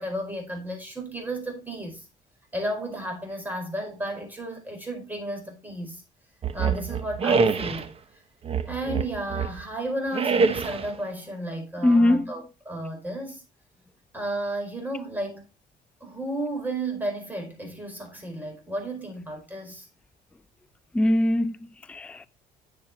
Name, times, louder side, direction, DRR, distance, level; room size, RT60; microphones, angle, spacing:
voice 1, 0.0-2.0 2.5-6.0 6.5-7.9 8.6-13.4 14.1-15.4 16.0-19.9, right 1 dB, 10° right, 4.7 m, -33 dB
sound 1, 6.4-7.9 8.4-9.6 10.1-11.0, right 5 dB, 35° right, 1.0 m, -25 dB
voice 2, 11.8-12.3 20.9-22.3, left 1 dB, 5° left, 0.4 m, -22 dB
10.0 x 6.9 x 2.9 m
cardioid pair, 110°, 17 cm